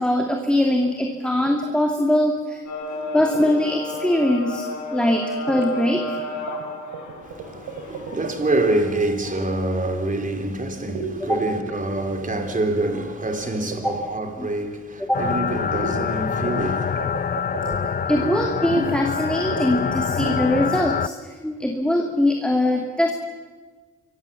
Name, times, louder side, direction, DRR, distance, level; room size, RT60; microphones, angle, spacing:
voice 1, 0.0-2.6 3.1-6.5 11.2-11.4 13.8-13.9 14.4-14.5 15.0-15.3 18.1-23.1, left 1 dB, 5° left, 2.7 m, -22 dB
sound 1, 1.5-1.7 3.2-3.5 3.9-4.3 5.5-5.7 6.0-6.7 6.9-8.6 10.9-11.1 11.5-11.8 12.1-12.2 12.4-14.1 15.7-15.9 16.5-18.3 18.7-19.2 19.5-19.7 20.0-20.4, right 4 dB, 80° right, 3.8 m, -33 dB
sound 2, 2.7-9.0, left 1 dB, 65° left, 6.0 m, -32 dB
voice 2, 7.2-17.1 17.7-17.8, right 2 dB, 25° right, 4.1 m, -26 dB
sound 3, 15.1-21.1, left 7 dB, 30° left, 0.7 m, -25 dB
27.0 x 24.0 x 7.2 m
cardioid pair, 90°, 30 cm